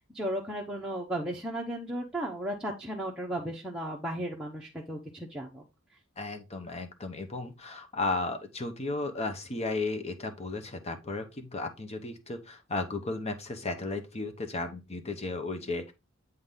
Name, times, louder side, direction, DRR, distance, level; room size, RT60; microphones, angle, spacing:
voice 1, 0.1-5.6, right 1 dB, 5° right, 0.9 m, -35 dB
voice 2, 6.2-15.9, left 3 dB, 30° left, 0.9 m, -34 dB
7.9 x 3.9 x 3.7 m
head